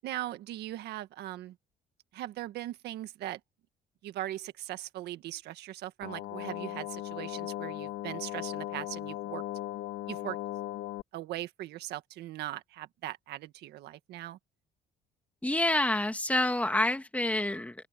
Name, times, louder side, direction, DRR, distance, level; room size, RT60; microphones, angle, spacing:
voice 1, 0.0-1.5 2.1-3.4 4.0-9.4 10.1-10.4 11.1-14.4, right 14 dB, 75° right, 1.7 m, -39 dB
sound 1, 6.0-11.0, left 14 dB, 80° left, 2.4 m, -38 dB
voice 2, 15.4-17.7, left 1 dB, 10° left, 2.1 m, -27 dB
open air
cardioid pair, 110°, 17 cm